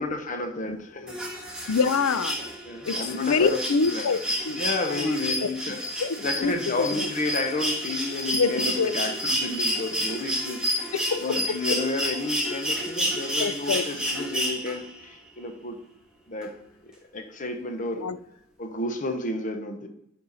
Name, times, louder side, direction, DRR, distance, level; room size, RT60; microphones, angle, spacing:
voice 1, 0.0-1.7 2.6-3.6 3.9-4.2 4.5-5.8 6.2-10.9 11.2-15.8 16.3-16.5 17.1-18.1 18.6-19.9, left 2 dB, 40° left, 5 dB, 1.1 m, -31 dB
sound 1, 1.1-15.0 16.4-16.5, equal, 5° right, 1.5 m, -30 dB
voice 2, 1.7-2.4 2.9-4.2 4.5-5.5 6.0-7.1 8.3-8.5 8.8-8.9 11.1-11.2 13.4-13.9 18.0-18.2, left 5 dB, 90° left, 14 dB, 0.5 m, -26 dB
10.5 x 4.5 x 4.1 m, 0.76 s
head